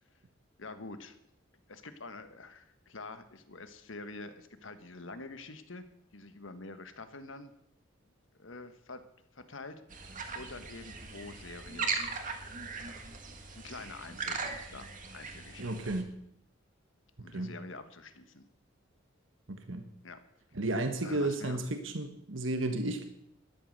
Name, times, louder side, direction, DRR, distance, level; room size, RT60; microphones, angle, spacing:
voice 1, 0.6-1.2 1.7-5.8 6.1-7.5 8.4-9.0 9.3-11.9 13.5-15.9 17.2-18.4 20.0-20.2 21.0-21.6, left 3 dB, 75° left, 10 dB, 1.5 m, -47 dB
sound 1, 9.9-16.0, right 4 dB, 45° right, 1.8 m, -39 dB
voice 2, 15.6-16.1 17.3-17.5 19.5-19.9 20.5-23.1, right 2 dB, 75° right, 7 dB, 1.5 m, -33 dB
13.0 x 11.0 x 6.6 m, 0.75 s
head